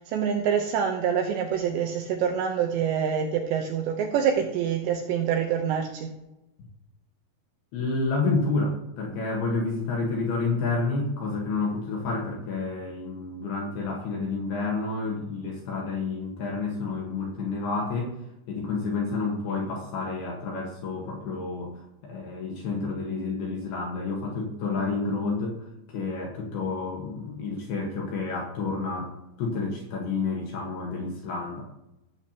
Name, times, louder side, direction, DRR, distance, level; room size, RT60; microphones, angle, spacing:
voice 1, 0.0-6.1, right 8 dB, 80° right, 2 dB, 2.6 m, -26 dB
voice 2, 7.7-18.2 18.5-25.6 25.9-31.7, left 3 dB, 65° left, -1 dB, 2.7 m, -29 dB
16.0 x 7.9 x 2.9 m, 0.89 s
omnidirectional pair, 5.9 m